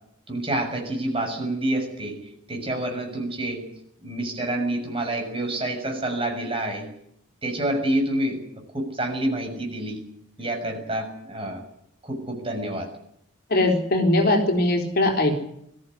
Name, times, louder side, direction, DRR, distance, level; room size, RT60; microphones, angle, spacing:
voice 1, 0.3-3.6 4.0-6.9 7.4-8.4 8.7-10.0 10.4-11.6 12.0-12.9, right 1 dB, 25° right, 2 dB, 6.7 m, -28 dB
voice 2, 13.5-15.4, left 1 dB, 50° left, 4 dB, 4.0 m, -20 dB
22.0 x 14.5 x 9.9 m, 0.76 s
head